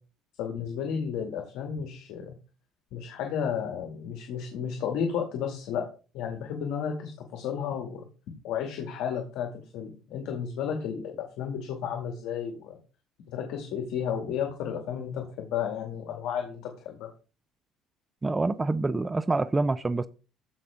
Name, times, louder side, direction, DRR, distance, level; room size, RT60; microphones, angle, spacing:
voice 1, 0.4-2.3 2.9-5.9 6.1-8.1 8.4-12.8 13.3-17.1, left 7 dB, 70° left, 2.3 m, -33 dB
voice 2, 18.2-20.1, right 3 dB, 15° right, 0.5 m, -26 dB
14.5 x 5.5 x 3.7 m
cardioid pair, 135°, 0 cm